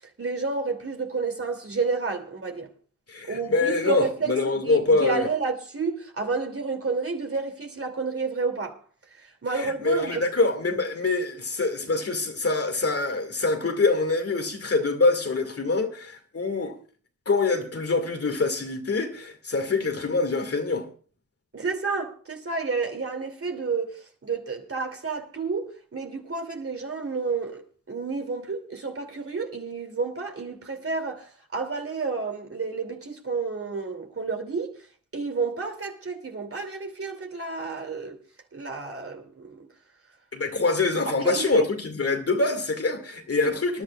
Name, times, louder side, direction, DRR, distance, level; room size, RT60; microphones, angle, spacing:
voice 1, 0.2-2.7 3.3-8.8 9.2-10.3 21.5-34.8 35.1-38.2 38.5-39.7 41.1-41.7 43.4-43.5, right 4 dB, 45° right, 2.8 m, -30 dB
voice 2, 3.1-5.3 9.5-16.7 17.3-20.9 40.3-43.8, left 3 dB, 50° left, 2.2 m, -25 dB
26.5 x 11.0 x 2.4 m
wide cardioid pair, 80°, 31 cm